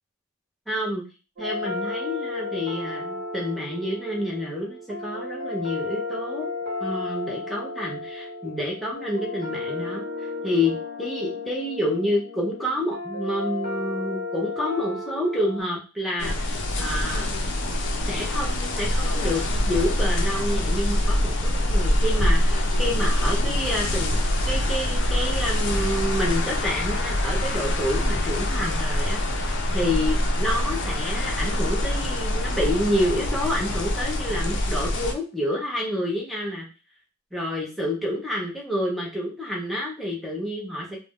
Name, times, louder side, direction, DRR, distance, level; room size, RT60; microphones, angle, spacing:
voice 1, 0.7-1.0 1.4-6.5 6.8-17.3 18.1-36.7 37.3-41.0, left 1 dB, ahead, -4 dB, 0.6 m, -28 dB
sound 1, 1.4-15.6, left 3 dB, 45° right, 0.7 m, -33 dB
sound 2, 16.2-35.1, left 1 dB, 55° left, 0.5 m, -24 dB
2.4 x 2.1 x 3.5 m, 0.32 s
head